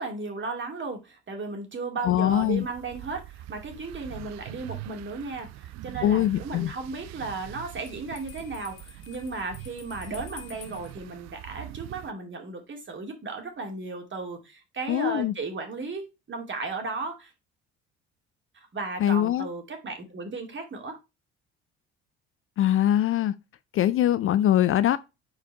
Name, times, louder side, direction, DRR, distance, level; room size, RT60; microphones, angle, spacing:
voice 1, 0.0-17.3 18.5-21.0, right 3 dB, 35° right, 2.3 m, -35 dB
voice 2, 2.0-2.6 6.0-6.7 14.9-15.3 19.0-19.5 22.6-23.4 23.7-25.0, left 12 dB, 40° left, 0.4 m, -22 dB
sound 1, 2.3-12.1, right 14 dB, 55° right, 0.5 m, -43 dB
Bell, 7.9-11.0, left 7 dB, 65° left, 1.7 m, -49 dB
4.8 x 4.4 x 4.5 m
hypercardioid pair, 60°, 33 cm